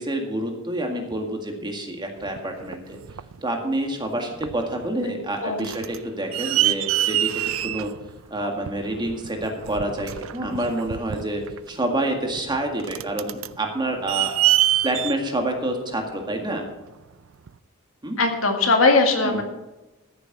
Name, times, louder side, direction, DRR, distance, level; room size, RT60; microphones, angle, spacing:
voice 1, 0.0-3.0 3.4-7.3 7.6-7.9 8.3-11.4 11.7-14.3 14.8-16.7 18.0-18.2 19.2-19.4, right 1 dB, 20° right, 3 dB, 1.9 m, -28 dB
sound 1, 2.2-3.4 4.0-4.1 4.4-4.9 5.2-16.7 17.5-17.6, right 14 dB, 70° right, 0.5 m, -26 dB
voice 2, 18.2-19.4, left 3 dB, 75° left, 4 dB, 2.0 m, -20 dB
14.0 x 6.9 x 6.6 m, 1.1 s
head